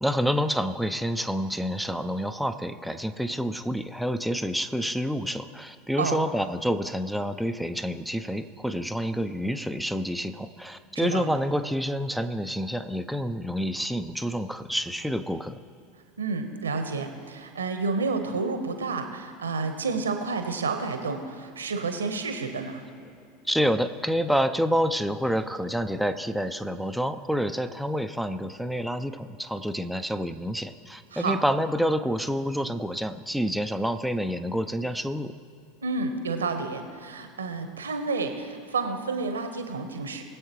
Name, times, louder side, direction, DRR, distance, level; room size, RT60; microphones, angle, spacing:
voice 1, 0.0-15.6 23.5-35.3, equal, ahead, 8 dB, 0.6 m, -28 dB
voice 2, 10.9-11.3 16.2-22.8 31.1-31.4 35.8-40.2, right 4 dB, 75° right, 6 dB, 1.1 m, -30 dB
21.5 x 8.0 x 3.1 m, 2.5 s
figure-of-eight pair, 80°, 0 cm